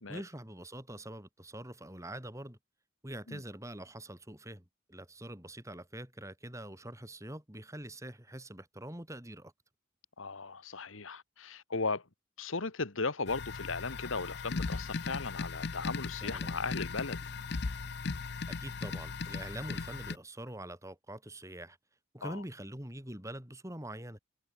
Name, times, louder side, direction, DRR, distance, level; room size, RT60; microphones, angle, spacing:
voice 1, 0.1-2.6 3.0-9.5 16.2-16.6 18.5-21.8 22.1-24.2, right 1 dB, 15° right, 4.1 m, -44 dB
voice 2, 10.2-12.0 12.4-17.2 22.2-22.4, left 4 dB, 85° left, 1.7 m, -37 dB
sound 1, 13.3-20.2, left 4 dB, 55° left, 0.7 m, -38 dB
head